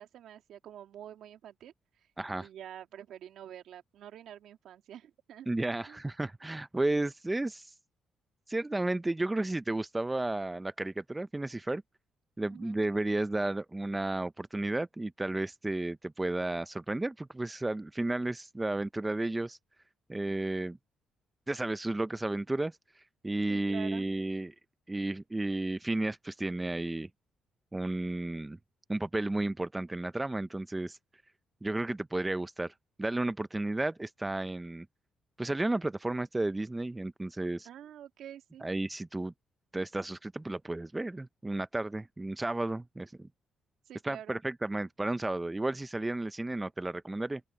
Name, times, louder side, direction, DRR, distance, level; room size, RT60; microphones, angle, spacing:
voice 1, 0.0-1.7 2.3-5.5 5.9-6.0 12.5-12.8 23.5-24.0 37.6-38.7 43.9-44.4, right 10 dB, 75° right, 2.4 m, -47 dB
voice 2, 2.2-2.5 5.5-7.7 8.5-11.8 12.4-19.6 20.1-20.8 21.5-22.8 23.2-24.5 24.9-27.1 27.7-28.6 28.9-31.0 31.6-34.9 35.4-37.7 38.6-39.3 39.7-43.3 44.0-47.4, right 2 dB, 15° right, 0.5 m, -33 dB
open air
cardioid pair, 90°, 0 cm